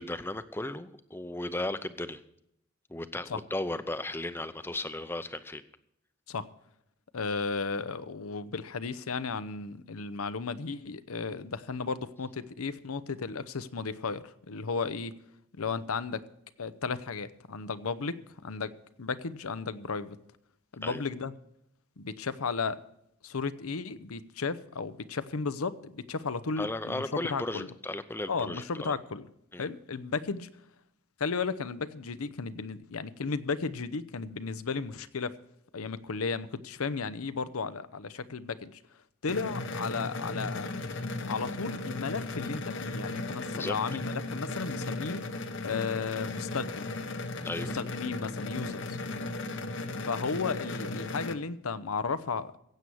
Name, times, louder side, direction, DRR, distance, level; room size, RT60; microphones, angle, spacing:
voice 1, 0.0-2.2 2.9-5.6 20.8-21.0 26.6-29.0 29.5-29.7 43.5-43.8 47.4-47.7, left 1 dB, 10° left, 12 dB, 0.6 m, -35 dB
voice 2, 7.1-15.1 15.6-16.2 16.6-20.2 20.7-21.3 22.0-22.8 23.2-27.7 28.3-29.3 29.6-30.5 31.2-35.4 35.7-38.8 39.2-40.7 41.2-45.3 45.6-46.9 47.6-49.0 50.1-52.6, left 4 dB, 85° left, 13 dB, 0.8 m, -34 dB
sound 1, 39.3-51.3, left 2 dB, 55° left, 0.9 m, -36 dB
16.0 x 8.5 x 6.2 m, 0.77 s
head